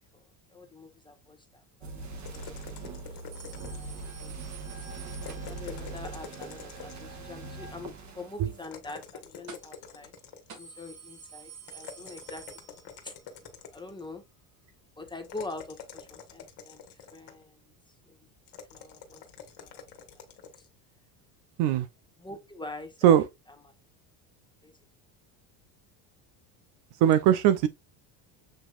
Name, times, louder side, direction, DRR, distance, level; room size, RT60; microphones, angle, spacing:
voice 1, 0.1-3.0 3.7-4.3 5.2-10.1 10.5-12.6 13.0-13.1 13.7-14.2 15.0-16.8 17.1-17.6 18.1-18.2 18.7-19.8 20.6-20.7 22.2-23.2 24.6-24.7, left 2 dB, 10° left, 1.2 m, -44 dB
sound 1, 1.8-8.7, right 3 dB, 35° right, 1.4 m, -41 dB
sound 2, 2.2-4.1 5.1-7.2 8.6-10.6 11.7-14.0 15.2-17.5 18.5-20.7, left 7 dB, 50° left, 1.6 m, -46 dB
sound 3, 3.3-6.0 9.5-9.9 10.2-10.3 10.5-13.2 13.6-13.7 14.7-14.8, right 6 dB, 85° right, 2.8 m, -49 dB
voice 2, 27.0-27.7, right 10 dB, 60° right, 0.7 m, -20 dB
7.5 x 2.9 x 2.4 m
supercardioid pair, 100°, 49 cm